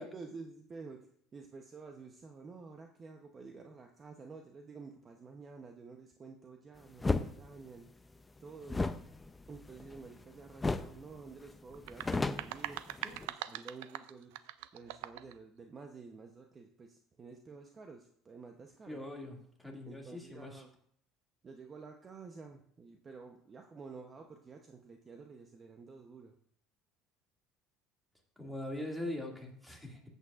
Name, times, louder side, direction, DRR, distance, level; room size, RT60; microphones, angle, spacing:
voice 1, 0.0-7.9 8.4-8.9 9.5-12.8 13.2-14.4 14.7-19.0 19.9-20.7 21.4-26.3, right 4 dB, 30° right, 4 dB, 0.7 m, -50 dB
sound 1, 7.0-7.3 8.7-10.2 10.6-11.0 11.3-11.4 11.7-13.3, left 3 dB, 15° left, 0.5 m, -33 dB
sound 2, 11.7-15.4, right 14 dB, 85° right, 0.4 m, -43 dB
voice 2, 18.9-20.6 28.4-30.0, left 1 dB, ahead, 0 dB, 2.1 m, -42 dB
14.0 x 8.1 x 2.4 m, 0.64 s
supercardioid pair, 115°, 0 cm